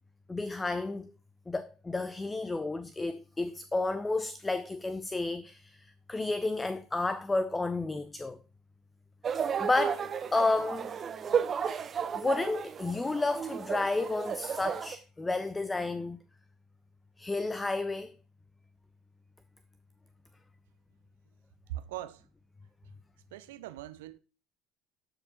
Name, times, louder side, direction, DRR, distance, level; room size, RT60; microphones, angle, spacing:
voice 1, 0.3-1.1 1.5-8.4 9.6-10.9 12.1-16.2 17.2-18.1, left 2 dB, 15° left, 0.5 m, -31 dB
sound 1, 9.2-15.0, right 7 dB, 35° right, 0.7 m, -33 dB
voice 2, 21.7-22.3 23.3-24.2, right 13 dB, 70° right, 0.6 m, -41 dB
12.0 x 5.2 x 2.9 m
figure-of-eight pair, 60°, 0 cm